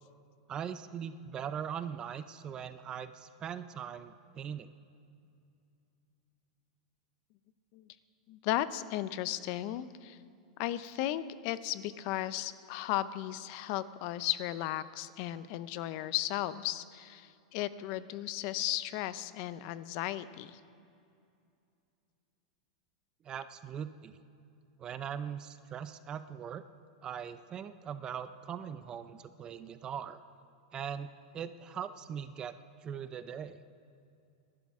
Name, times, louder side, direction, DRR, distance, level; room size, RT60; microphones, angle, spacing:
voice 1, 0.5-4.7 23.2-24.2 24.8-26.6 27.0-30.2 30.7-32.5 32.8-33.6, right 8 dB, 20° right, 12 dB, 0.4 m, -40 dB
voice 2, 8.3-10.2 10.6-20.6, left 14 dB, 45° left, 15 dB, 0.6 m, -35 dB
27.5 x 11.5 x 3.6 m, 2.5 s
supercardioid pair, 155°, 4 cm